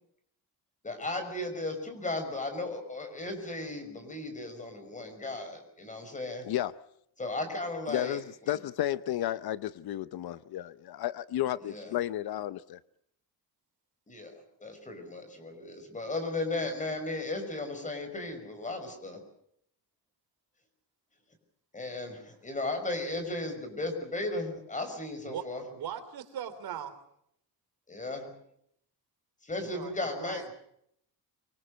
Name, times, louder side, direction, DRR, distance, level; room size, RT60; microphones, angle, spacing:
voice 1, 0.8-6.5 7.2-8.2 11.6-11.9 14.1-14.3 14.6-19.2 21.7-25.6 27.9-28.3 29.4-30.5, left 2 dB, 20° left, 5.7 m, -35 dB
voice 2, 7.9-12.8, left 13 dB, 70° left, 0.8 m, -32 dB
voice 3, 25.2-26.9 29.6-30.5, right 9 dB, 65° right, 3.2 m, -40 dB
25.5 x 24.0 x 6.5 m
cardioid pair, 175°, 39 cm